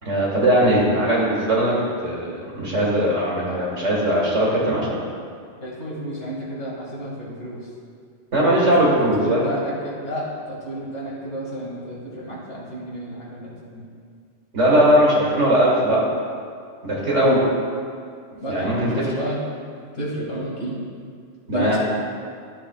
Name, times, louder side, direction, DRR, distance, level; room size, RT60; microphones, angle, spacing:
voice 1, 0.0-1.7 2.0-5.0 8.3-9.4 14.5-16.0 16.8-17.4 18.5-18.9 21.5-21.8, right 1 dB, 85° right, -5 dB, 2.5 m, -19 dB
voice 2, 5.6-7.6 8.3-13.9 17.2-17.5 18.4-19.4 19.9-20.8 21.5-21.8, right 1 dB, 70° left, -5 dB, 2.4 m, -30 dB
12.5 x 7.4 x 2.3 m, 2.2 s
omnidirectional pair, 1.2 m